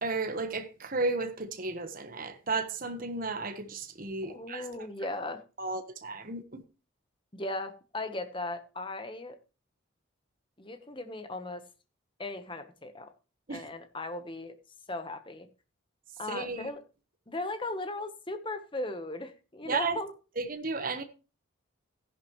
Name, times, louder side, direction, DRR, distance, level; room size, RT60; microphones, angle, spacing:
voice 1, 0.0-4.6 5.6-6.6 13.5-13.7 16.3-16.7 19.7-20.0 20.4-21.0, right 3 dB, 40° right, 1.2 m, -33 dB
voice 2, 4.2-5.4 7.3-9.4 10.6-11.7 12.2-13.1 13.5-14.6 14.9-15.5 16.2-16.8 17.3-20.1, left 2 dB, 25° left, 1.1 m, -37 dB
14.0 x 11.0 x 3.1 m
head